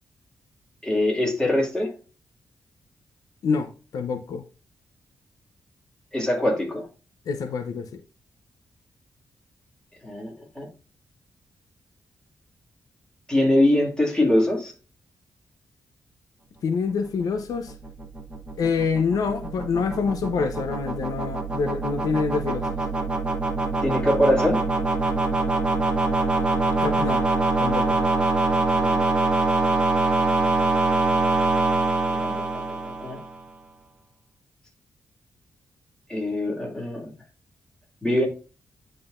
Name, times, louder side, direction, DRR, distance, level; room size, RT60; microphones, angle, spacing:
voice 1, 0.8-1.9 6.1-6.9 10.0-10.7 13.3-14.7 23.8-24.6 28.7-29.0 32.1-33.2 36.1-37.1 38.0-38.3, left 1 dB, 10° left, 2.3 m, -23 dB
voice 2, 3.4-4.4 7.3-8.0 16.6-17.7 18.6-22.8 26.8-27.3 27.6-28.0, left 5 dB, 80° left, 0.7 m, -26 dB
sound 1, 17.2-33.4, right 3 dB, 15° right, 1.3 m, -24 dB
9.9 x 3.9 x 2.5 m
cardioid pair, 110°, 6 cm